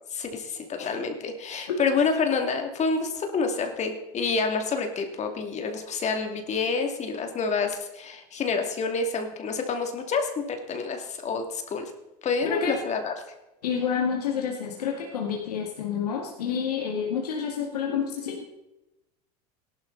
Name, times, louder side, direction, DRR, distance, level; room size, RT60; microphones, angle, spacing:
voice 1, 0.1-11.9 12.2-13.1, left 4 dB, 35° left, 5 dB, 2.5 m, -28 dB
voice 2, 12.4-12.8 13.6-18.5, left 7 dB, 85° left, 1 dB, 2.2 m, -29 dB
17.5 x 12.0 x 4.0 m, 0.94 s
hypercardioid pair, 95°, 20 cm